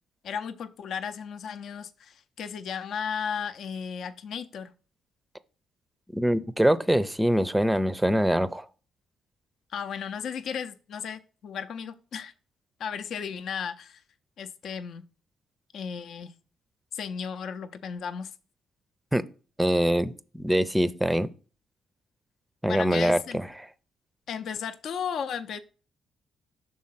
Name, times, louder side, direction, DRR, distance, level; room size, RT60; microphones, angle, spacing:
voice 1, 0.2-4.7 9.7-12.3 12.8-14.0 14.4-15.0 15.7-16.3 16.9-18.3 22.7-23.4 24.3-25.6, left 7 dB, 65° left, 0.6 m, -35 dB
voice 2, 6.1-8.7 19.1-19.2 19.6-21.3 22.6-23.5, equal, 5° right, 0.5 m, -24 dB
6.3 x 3.8 x 5.7 m
cardioid pair, 90°, 0 cm